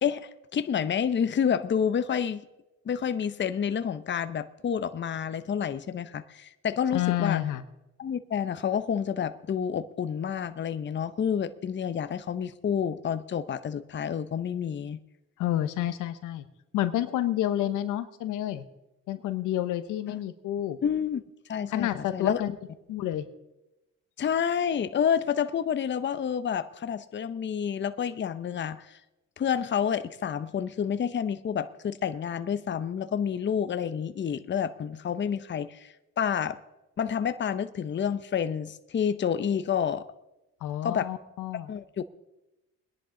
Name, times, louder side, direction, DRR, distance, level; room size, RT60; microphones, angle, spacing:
voice 1, 0.0-2.4 2.9-7.4 8.0-15.0 20.1-20.2 20.8-21.2 21.5-22.4 24.2-29.0 29.4-36.6 37.0-40.0 40.8-41.1 41.7-42.0, left 8 dB, 40° left, 12 dB, 0.7 m, -29 dB
voice 2, 6.9-7.6 15.4-16.5 16.7-18.6 19.1-20.8 21.7-22.6 22.9-23.2 40.6-41.7, left 12 dB, 90° left, 11 dB, 0.9 m, -29 dB
20.5 x 10.5 x 3.8 m, 0.97 s
cardioid pair, 90°, 30 cm